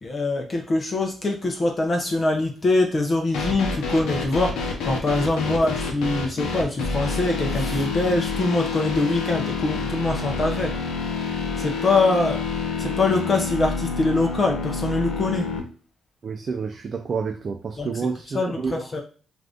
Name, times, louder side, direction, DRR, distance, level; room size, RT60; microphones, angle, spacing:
voice 1, 0.0-10.8 11.6-12.4 12.8-15.5 17.8-17.9 18.3-19.0, left 2 dB, 35° left, 2 dB, 0.6 m, -23 dB
sound 1, 3.3-15.6, left 4 dB, 85° left, 0.7 m, -28 dB
voice 2, 16.2-18.8, right 5 dB, 45° right, 3 dB, 0.4 m, -29 dB
2.5 x 2.5 x 3.4 m, 0.39 s
cardioid pair, 90°, 0 cm